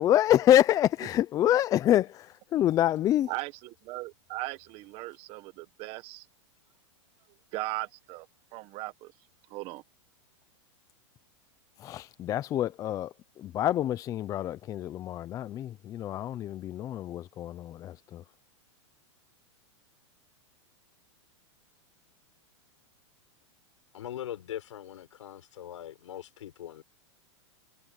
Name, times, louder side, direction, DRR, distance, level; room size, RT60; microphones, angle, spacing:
voice 1, 0.0-3.3 11.8-18.2, left 12 dB, 20° left, 0.6 m, -26 dB
voice 2, 3.3-6.3 7.5-8.3 8.5-9.1 9.5-9.8, right 20 dB, 35° right, 1.5 m, -38 dB
voice 3, 23.9-26.8, left 11 dB, 85° left, 7.3 m, -41 dB
supercardioid pair, 145°, 16 cm